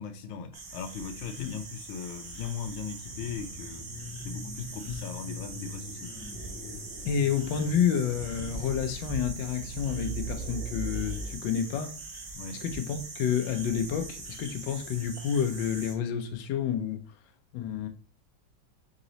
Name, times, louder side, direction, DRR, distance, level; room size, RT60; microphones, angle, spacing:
voice 1, 0.0-3.9 4.2-6.1 12.3-12.6, left 6 dB, 90° left, 1.5 m, -38 dB
sound 1, 0.5-15.9, right 3 dB, 50° right, 0.6 m, -42 dB
sound 2, 3.0-11.4, right 1 dB, 50° left, 1.3 m, -41 dB
voice 2, 7.0-12.0 12.6-17.2 17.5-17.9, left 8 dB, 70° left, 1.3 m, -29 dB
4.0 x 2.9 x 3.9 m
omnidirectional pair, 2.3 m